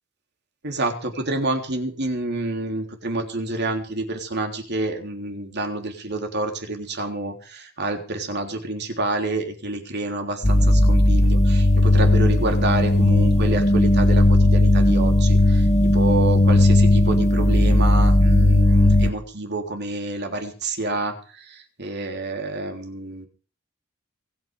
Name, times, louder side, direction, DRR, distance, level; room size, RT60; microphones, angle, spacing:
voice 1, 0.6-23.3, right 2 dB, 55° right, 4 dB, 3.5 m, -28 dB
sound 1, 10.4-19.1, left 1 dB, 35° left, 1.7 m, -16 dB
24.0 x 9.4 x 5.3 m, 0.39 s
head